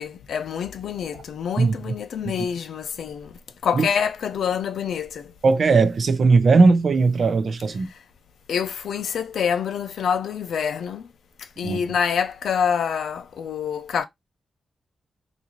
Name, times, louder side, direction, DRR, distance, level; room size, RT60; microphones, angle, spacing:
voice 1, 0.0-5.3 8.5-11.1 11.4-14.0, left 7 dB, 80° left, 0.5 m, -26 dB
voice 2, 5.4-7.9 11.6-11.8, right 4 dB, 45° right, 0.5 m, -18 dB
4.0 x 2.6 x 3.0 m
wide cardioid pair, 180°, 0 cm